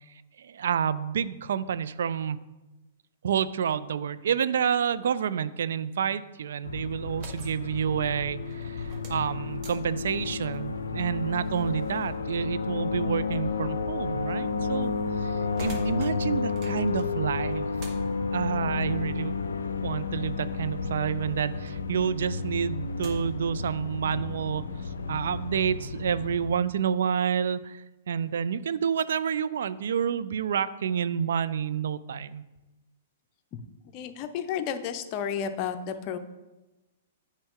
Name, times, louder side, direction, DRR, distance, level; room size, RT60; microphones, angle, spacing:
voice 1, 0.4-2.4 3.2-14.9 15.2-15.3 15.6-17.7 18.3-19.3 19.8-24.6 25.1-32.4, right 7 dB, 70° right, 15 dB, 0.3 m, -29 dB
sound 1, 6.6-26.5, left 4 dB, 80° left, 0.5 m, -32 dB
sound 2, 7.0-21.7 22.1-23.5, right 3 dB, 40° right, 1.5 m, -49 dB
voice 2, 33.9-36.2, left 8 dB, 40° left, 8 dB, 0.7 m, -32 dB
7.9 x 5.4 x 3.7 m, 1.1 s
hypercardioid pair, 115°, 0 cm